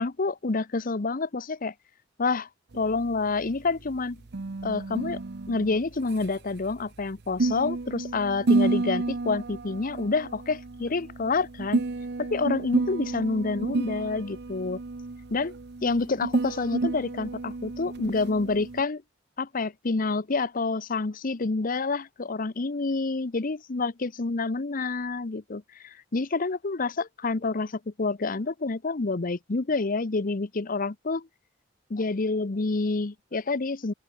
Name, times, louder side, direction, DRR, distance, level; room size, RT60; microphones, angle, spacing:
voice 1, 0.0-1.7 2.2-2.5 2.7-4.2 4.6-5.2 5.5-11.8 12.2-14.8 15.3-15.5 15.8-19.0 19.4-31.3 31.9-33.9, left 3 dB, 45° left, 0.8 m, -28 dB
sound 1, 2.7-18.8, right 3 dB, 60° right, 0.8 m, -31 dB
open air
head